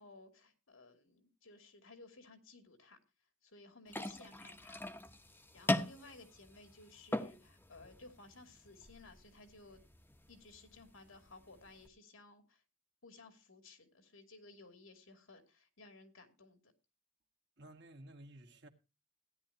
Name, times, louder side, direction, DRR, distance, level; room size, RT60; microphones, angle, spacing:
voice 1, 0.0-3.0 3.4-4.8 5.5-9.8 10.3-12.6 13.0-16.6, left 3 dB, 85° left, 2.6 m, -58 dB
sound 1, 3.9-11.9, left 1 dB, 10° left, 1.0 m, -42 dB
voice 2, 17.6-18.7, right 1 dB, 60° right, 1.8 m, -54 dB
16.5 x 10.5 x 2.8 m
head